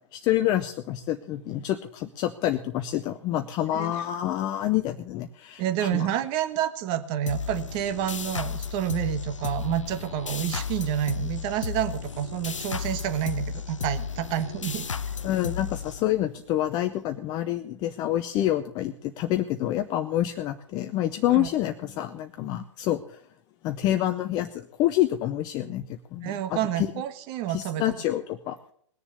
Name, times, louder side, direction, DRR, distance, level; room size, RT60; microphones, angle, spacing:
voice 1, 0.1-6.1 15.2-23.2 23.6-26.9 27.5-28.6, left 13 dB, 25° left, 7 dB, 0.7 m, -27 dB
voice 2, 5.6-14.9 21.3-21.5 26.2-27.8, right 11 dB, 30° right, 11 dB, 1.3 m, -29 dB
sound 1, 7.3-16.5, left 6 dB, 80° left, 0.6 m, -34 dB
20.0 x 7.1 x 6.8 m, 0.63 s
figure-of-eight pair, 120°, 16 cm